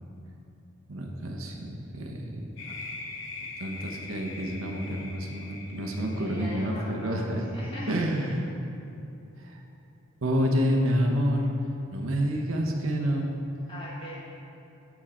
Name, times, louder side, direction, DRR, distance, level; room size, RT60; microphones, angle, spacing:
voice 1, 0.9-2.7 3.6-7.5 7.9-8.5 9.4-9.6 10.2-11.5 11.9-13.3, equal, 80° right, 1 dB, 0.9 m, -28 dB
sound 1, 2.6-7.1, left 3 dB, 65° left, 0.9 m, -42 dB
voice 2, 6.1-8.3 13.7-14.2, left 1 dB, 25° left, -6 dB, 1.7 m, -40 dB
7.3 x 7.0 x 4.3 m, 2.9 s
head